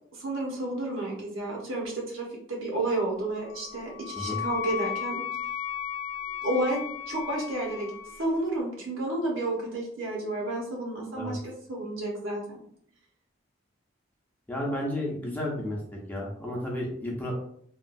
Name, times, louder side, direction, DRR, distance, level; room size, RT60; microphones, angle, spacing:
voice 1, 0.1-5.2 6.4-12.6, right 1 dB, 85° right, -2 dB, 1.1 m, -31 dB
Wind instrument woodwind instrument, 3.5-8.3, left 8 dB, 75° left, 0.3 m, -35 dB
voice 2, 14.5-17.3, left 1 dB, 10° left, -3 dB, 0.5 m, -32 dB
3.0 x 2.3 x 2.6 m, 0.66 s
head